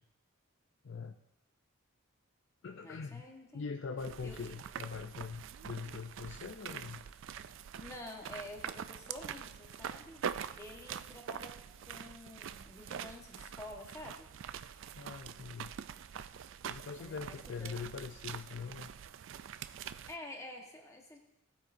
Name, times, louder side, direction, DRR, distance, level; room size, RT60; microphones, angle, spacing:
voice 1, 0.8-1.2 2.6-3.3 3.5-7.1 14.9-15.7 16.6-18.9, left 5 dB, 60° left, 6 dB, 0.5 m, -43 dB
voice 2, 2.8-3.6 4.2-4.5 7.7-11.6 11.9-14.3 17.0-18.0 20.1-21.2, left 1 dB, 15° left, 1 dB, 1.3 m, -49 dB
sound 1, 4.0-20.2, right 8 dB, 65° right, 0.3 m, -45 dB
18.0 x 8.4 x 2.6 m, 0.92 s
head